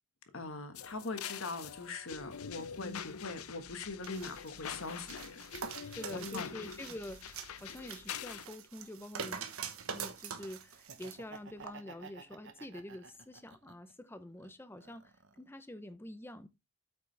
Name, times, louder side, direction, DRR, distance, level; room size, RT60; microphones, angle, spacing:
voice 1, 0.3-5.4 5.7-5.8 6.3-6.5, left 3 dB, 70° left, 1.4 m, -42 dB
sound 1, 0.7-8.5, left 7 dB, 85° left, 0.7 m, -45 dB
sound 2, 4.0-11.2 11.6-11.7, right 6 dB, 80° right, 1.3 m, -44 dB
voice 2, 5.8-9.5 9.9-16.5, left 1 dB, 10° left, 0.5 m, -47 dB
Laughter, 10.7-13.9 14.4-15.5, right 4 dB, 55° right, 1.0 m, -53 dB
8.7 x 6.8 x 3.3 m
head